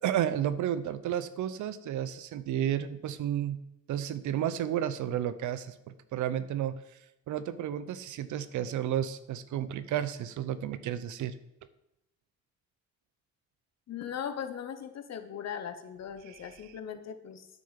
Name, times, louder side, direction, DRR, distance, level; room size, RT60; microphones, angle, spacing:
voice 1, 0.0-3.6 3.9-6.8 7.3-11.3, right 10 dB, 75° right, 13 dB, 0.7 m, -32 dB
voice 2, 13.9-17.5, left 8 dB, 60° left, 8 dB, 1.1 m, -39 dB
9.2 x 6.3 x 5.8 m, 0.85 s
cardioid pair, 90°, 30 cm